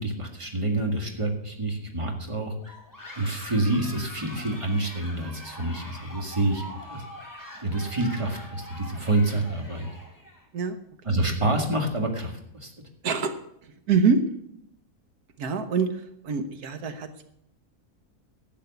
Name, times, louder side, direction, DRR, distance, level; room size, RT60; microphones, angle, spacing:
voice 1, 0.0-2.7 3.2-7.0 7.6-9.9 11.0-12.7, right 2 dB, 20° right, 2 dB, 2.0 m, -27 dB
sound 1, 2.6-10.5, equal, 10° left, 2.4 m, -43 dB
voice 2, 13.0-13.3 13.9-14.2 15.4-17.2, right 5 dB, 85° right, 9 dB, 1.6 m, -25 dB
12.0 x 8.4 x 6.9 m, 0.74 s
omnidirectional pair, 1.6 m